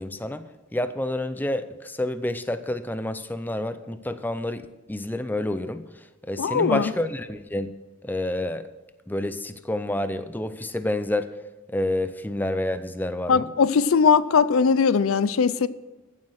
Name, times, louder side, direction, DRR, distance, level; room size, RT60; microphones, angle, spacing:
voice 1, 0.0-7.7 8.0-8.7 9.1-11.3 11.7-13.5, left 1 dB, 10° left, 0.5 m, -29 dB
voice 2, 6.4-6.9 13.3-15.7, left 5 dB, 90° left, 0.5 m, -20 dB
14.5 x 7.5 x 6.3 m
head